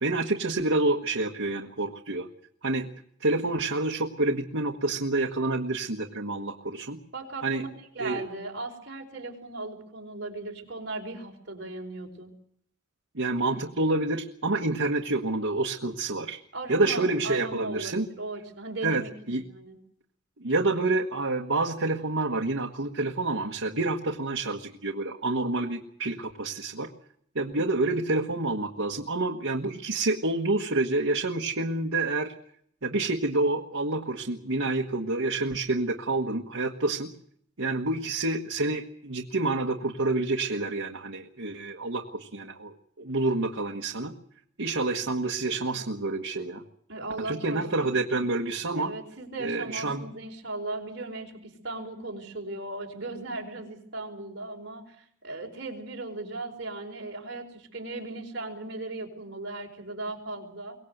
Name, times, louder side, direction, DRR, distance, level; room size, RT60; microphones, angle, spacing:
voice 1, 0.0-2.3 2.6-2.9 3.2-7.0 7.4-7.6 8.0-8.2 13.1-16.4 16.7-18.1 18.8-19.0 19.3-19.4 20.4-26.9 27.3-32.3 32.8-37.1 37.6-44.1 44.6-46.6 47.2-48.9 49.4-50.0, right 2 dB, 75° right, 2 dB, 1.5 m, -28 dB
voice 2, 7.1-7.7 7.9-12.3 16.5-19.1 19.4-19.8 46.9-47.9 48.7-60.8, right 2 dB, 55° right, 0 dB, 4.6 m, -37 dB
23.5 x 17.5 x 8.0 m, 0.68 s
head